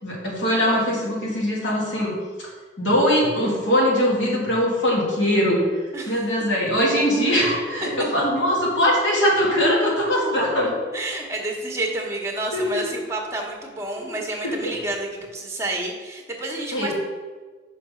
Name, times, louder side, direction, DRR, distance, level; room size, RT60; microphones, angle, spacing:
voice 1, 0.0-2.5 2.8-5.6 6.1-10.7 12.5-12.8 14.4-14.7 16.7-16.9, equal, 85° left, -4 dB, 2.3 m, -21 dB
sound 1, 7.6-8.7 10.0-10.8 13.9-14.9, equal, 40° left, 2.1 m, -37 dB
voice 2, 10.9-16.9, right 2 dB, 15° right, 1 dB, 1.1 m, -29 dB
5.9 x 5.6 x 5.1 m, 1.4 s
head